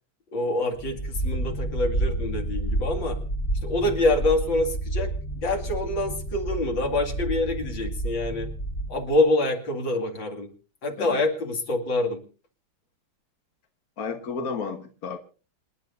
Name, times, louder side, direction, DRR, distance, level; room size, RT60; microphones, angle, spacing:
voice 1, 0.3-3.2 3.6-5.1 5.4-8.5 8.9-10.5 10.8-12.2, left 2 dB, 65° left, 3 dB, 3.1 m, -26 dB
sound 1, 0.8-9.2, right 1 dB, 20° left, 1.2 m, -30 dB
voice 2, 14.0-15.2, left 5 dB, 50° left, 5 dB, 1.7 m, -32 dB
27.5 x 11.0 x 2.7 m, 0.36 s
omnidirectional pair, 2.3 m